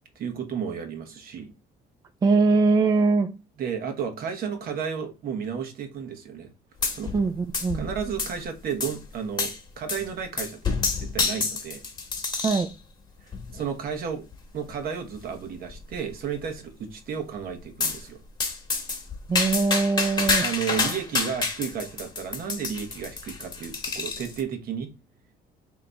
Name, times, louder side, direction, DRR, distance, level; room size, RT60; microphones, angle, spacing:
voice 1, 0.1-1.5 3.6-6.5 6.9-7.1 7.7-11.8 13.5-14.2 14.5-18.2 20.4-24.9, right 7 dB, 60° right, 1.1 m, -33 dB
voice 2, 2.2-3.3 7.1-7.8 12.4-12.7 19.3-20.4, right 4 dB, 25° right, 0.3 m, -22 dB
sound 1, 6.8-7.3 7.5-8.4 8.8-9.0 9.4-9.6 9.9-10.1 10.4-12.7 13.3-13.7 14.3-14.4 14.7-14.8 15.1-15.2 15.7-16.1 17.8-18.0 18.4-24.4, left 4 dB, 25° left, 1.2 m, -28 dB
3.4 x 2.9 x 3.9 m
cardioid pair, 110°, 17 cm